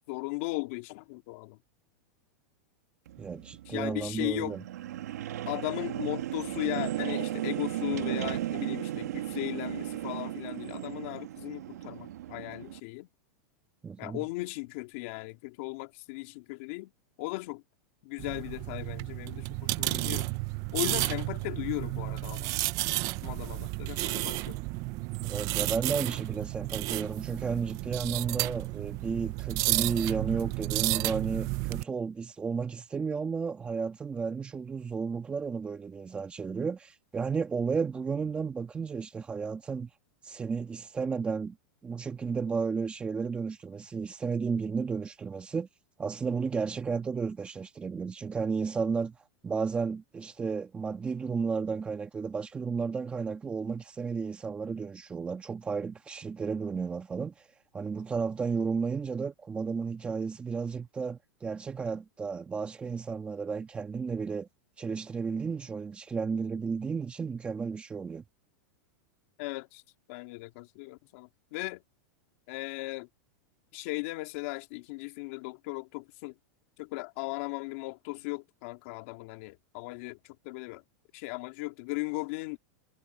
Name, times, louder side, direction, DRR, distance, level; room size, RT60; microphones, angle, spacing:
voice 1, 0.1-1.6 3.7-4.6 5.5-13.1 14.0-16.9 17.2-17.6 18.0-20.3 20.7-22.6 23.2-24.6 69.4-69.8 70.1-71.8 72.5-73.1 73.7-76.3 76.8-80.8 81.1-82.6, left 25 dB, 55° left, 2.8 m, -37 dB
sound 1, 3.1-12.8, right 13 dB, 85° right, 1.5 m, -36 dB
voice 2, 3.2-4.6 13.8-14.2 25.2-39.9 40.2-41.6 41.8-45.7 46.0-64.5 64.8-68.2, right 5 dB, 15° right, 1.5 m, -33 dB
sound 2, 18.2-31.8, right 21 dB, 40° right, 0.8 m, -32 dB
supercardioid pair, 150°, 8 cm